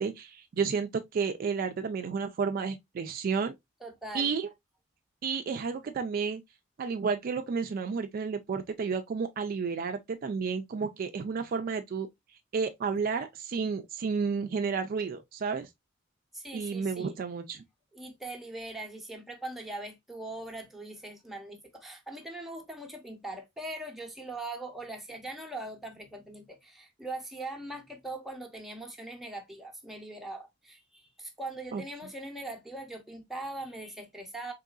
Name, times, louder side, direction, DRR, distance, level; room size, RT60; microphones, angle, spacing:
voice 1, 0.0-3.6 4.1-4.5 5.2-6.4 6.8-12.1 12.5-15.7 16.5-17.6 31.7-31.8, right 5 dB, 45° right, 0.3 m, -31 dB
voice 2, 3.8-4.3 16.3-17.2 17.9-34.5, right 2 dB, ahead, 0.7 m, -41 dB
3.7 x 3.0 x 2.3 m
head